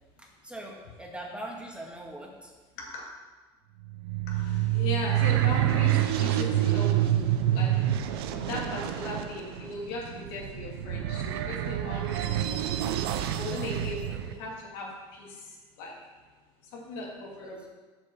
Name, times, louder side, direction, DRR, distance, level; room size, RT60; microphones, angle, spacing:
voice 1, 0.2-2.5 14.1-14.2, right 1 dB, 10° right, -1 dB, 2.2 m, -41 dB
sound 1, 3.8-14.3, right 13 dB, 90° right, 0.6 m, -27 dB
voice 2, 4.3-12.9 13.2-14.0 14.2-15.4 15.8-15.9 16.7-17.7, left 2 dB, 80° left, -3 dB, 2.5 m, -38 dB
7.4 x 5.2 x 7.1 m, 1.3 s
supercardioid pair, 85°, 12 cm